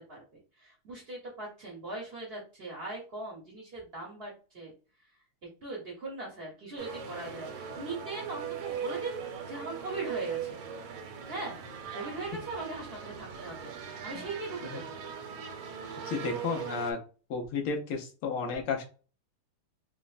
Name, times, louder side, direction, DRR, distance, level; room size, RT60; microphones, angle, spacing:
voice 1, 0.6-4.7 5.6-10.6 11.3-11.6 11.9-15.0, right 2 dB, 65° right, -3 dB, 0.5 m, -40 dB
sound 1, 6.8-16.9, right 7 dB, 80° right, 1.5 m, -40 dB
voice 2, 16.1-17.0 17.3-18.8, left 5 dB, 90° left, 2 dB, 1.7 m, -32 dB
4.2 x 2.1 x 2.4 m, 0.36 s
omnidirectional pair, 2.4 m